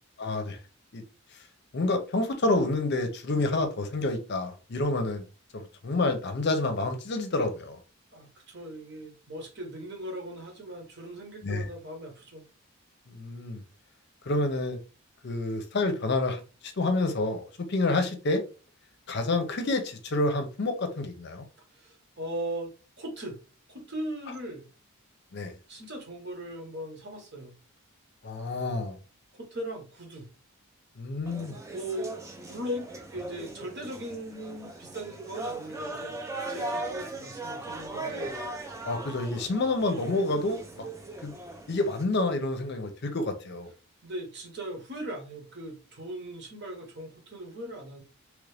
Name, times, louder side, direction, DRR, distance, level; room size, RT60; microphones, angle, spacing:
voice 1, 0.2-0.6 0.9-1.0 1.7-5.2 5.5-7.8 11.4-11.7 13.1-13.6 14.3-14.8 15.2-18.4 19.1-21.4 25.3-25.5 28.2-29.0 31.0-31.6 38.8-40.8 41.2-41.3 41.7-43.7, left 2 dB, 50° left, 0.6 m, -28 dB
voice 2, 8.1-12.4 21.7-23.4 23.7-24.7 25.7-27.5 29.3-30.2 31.7-38.3 44.0-48.0, right 1 dB, 50° right, 1.1 m, -39 dB
sound 1, 31.3-42.0, right 2 dB, 15° right, 0.5 m, -39 dB
3.0 x 2.5 x 3.3 m
head